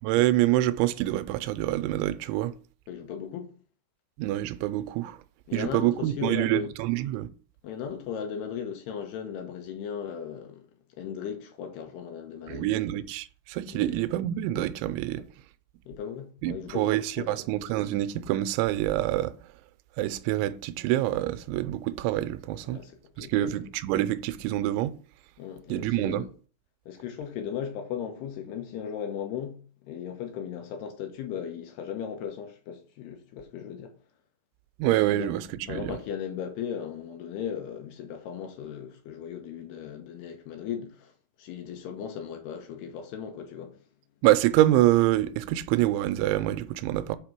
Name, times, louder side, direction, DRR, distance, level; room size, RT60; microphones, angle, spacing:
voice 1, 0.0-2.5 4.2-5.2 5.5-7.3 12.5-15.3 16.4-19.3 20.0-22.8 23.2-24.9 25.7-26.2 34.8-36.0 44.2-47.2, right 14 dB, 85° right, 3.0 m, -26 dB
voice 2, 2.9-3.6 5.5-6.7 7.6-10.7 11.0-12.8 13.7-13.9 15.2-15.3 15.9-17.4 22.6-22.9 23.2-23.6 25.4-26.3 26.9-33.9 35.1-35.3 35.7-41.1 41.4-43.8, left 8 dB, 75° left, 2.7 m, -37 dB
6.4 x 5.6 x 6.0 m
omnidirectional pair, 5.3 m